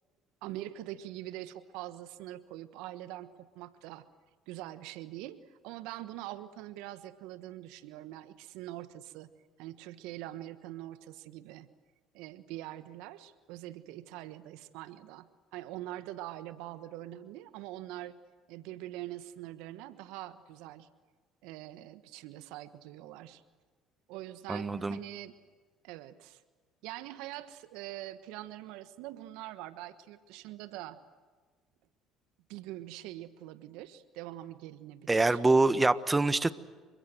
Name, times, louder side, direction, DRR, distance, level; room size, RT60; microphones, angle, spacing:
voice 1, 0.4-4.1 4.5-9.3 9.6-11.7 12.1-18.2 18.5-20.9 21.4-23.4 24.1-25.3 25.8-26.4 26.8-31.0 32.5-35.4, right 14 dB, 70° right, 13 dB, 1.3 m, -44 dB
voice 2, 24.5-25.0 35.1-36.5, right 2 dB, 20° right, 14 dB, 1.4 m, -25 dB
29.5 x 24.5 x 7.9 m, 1.4 s
hypercardioid pair, 60°, 0 cm